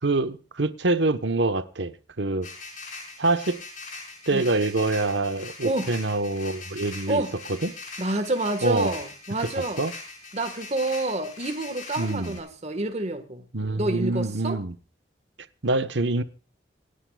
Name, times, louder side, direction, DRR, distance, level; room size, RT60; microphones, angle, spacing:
voice 1, 0.0-2.5 3.2-3.6 4.3-7.2 7.6-7.7 8.6-8.9 9.6-9.9 12.0-12.4 13.5-14.7 15.6-16.2, right 2 dB, 80° right, 11 dB, 1.1 m, -25 dB
sound 1, 2.4-12.4, left 3 dB, 45° left, 5.1 m, -41 dB
voice 2, 8.0-9.8 10.3-13.4 13.8-14.6, right 2 dB, 35° right, 7 dB, 1.5 m, -28 dB
28.0 x 9.9 x 2.4 m, 0.37 s
head